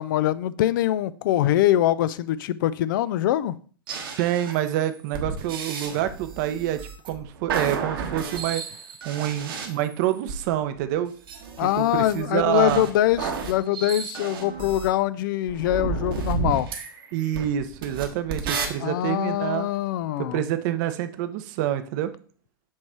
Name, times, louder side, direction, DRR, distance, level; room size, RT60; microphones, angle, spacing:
voice 1, 0.0-3.6 11.6-16.7 18.8-20.4, left 13 dB, 55° left, 16 dB, 0.4 m, -23 dB
sound 1, 3.9-10.4 11.3-14.9 15.5-18.7, right 5 dB, 65° right, 1.3 m, -32 dB
voice 2, 4.2-8.6 9.0-11.1 11.6-12.9 17.1-19.7 20.2-22.1, right 12 dB, 50° right, 10 dB, 0.7 m, -27 dB
7.4 x 3.2 x 4.3 m, 0.44 s
hypercardioid pair, 105°, 13 cm